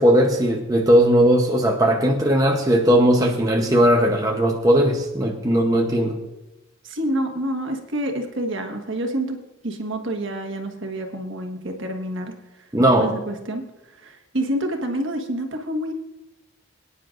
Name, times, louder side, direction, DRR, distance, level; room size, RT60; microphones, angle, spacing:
voice 1, 0.0-6.2 12.7-13.1, equal, 15° right, 1 dB, 0.8 m, -18 dB
voice 2, 6.8-9.4 9.6-13.6 13.9-15.9, right 1 dB, 60° right, 4 dB, 1.5 m, -28 dB
22.5 x 9.8 x 2.6 m, 1.0 s
head